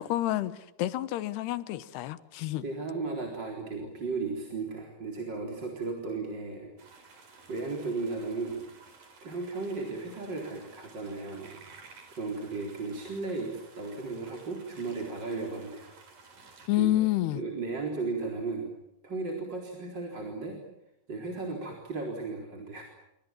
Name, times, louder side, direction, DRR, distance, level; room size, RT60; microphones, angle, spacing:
voice 1, 0.0-2.6 16.7-17.4, left 15 dB, 85° left, 3.2 m, -29 dB
voice 2, 2.6-6.7 7.0-8.6 9.2-11.5 12.1-15.9 16.8-17.1 17.3-18.7 19.0-20.6 21.1-22.8, right 3 dB, 25° right, 4.4 m, -35 dB
sound 1, 6.8-16.7, right 4 dB, 50° right, 5.6 m, -54 dB
28.0 x 25.5 x 7.5 m
omnidirectional pair, 4.6 m